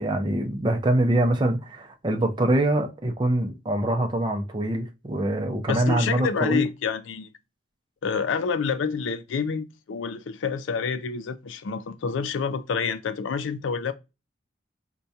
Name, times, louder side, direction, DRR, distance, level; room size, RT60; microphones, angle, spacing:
voice 1, 0.0-6.6, right 1 dB, 25° right, 0.5 m, -24 dB
voice 2, 5.7-7.3 8.0-13.9, left 5 dB, 85° left, 0.4 m, -28 dB
4.6 x 2.2 x 2.6 m
head